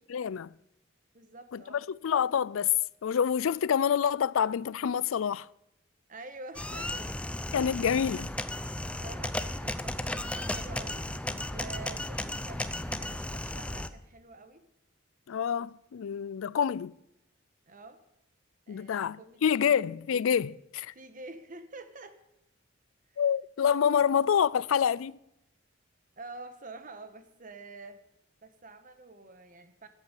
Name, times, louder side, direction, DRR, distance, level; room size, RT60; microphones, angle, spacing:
voice 1, 0.1-0.5 1.5-1.6 1.9-2.7 3.0-5.5 7.5-8.3 15.3-16.9 18.7-20.9 23.2-25.2, left 8 dB, 85° left, 0.4 m, -27 dB
voice 2, 1.1-1.8 6.1-7.1 8.8-11.0 11.4-14.6 17.7-18.0 18.7-19.9 20.9-22.2 26.2-28.0 28.4-29.9, right 3 dB, 40° right, 1.3 m, -47 dB
sound 1, 6.5-13.9, left 1 dB, 5° left, 0.5 m, -35 dB
13.5 x 8.9 x 7.4 m
head